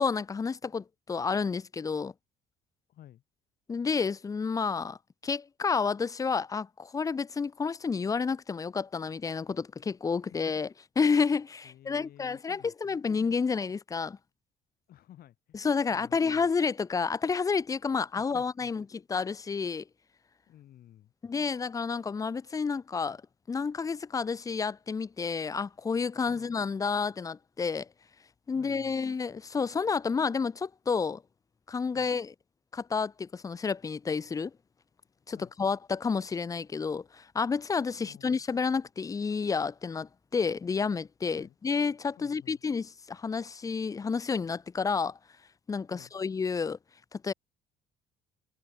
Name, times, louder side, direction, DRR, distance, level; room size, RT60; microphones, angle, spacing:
voice 1, 0.0-2.1 3.7-5.0 5.2-10.7 11.0-14.2 15.5-19.8 21.2-23.2 23.5-27.9 28.5-31.2 31.7-32.3 32.7-34.5 35.3-45.2 45.7-46.8 47.1-47.3, left 5 dB, 20° left, 0.5 m, -30 dB
voice 2, 2.9-3.2 11.6-13.2 14.9-15.6 15.9-16.5 18.1-18.9 20.5-21.1 26.3-26.5 28.5-29.0 31.9-32.1 35.4-35.5 38.0-38.4 41.3-41.6 42.2-42.6 45.9-46.1, left 12 dB, 65° left, 3.9 m, -54 dB
cardioid pair, 110°, 17 cm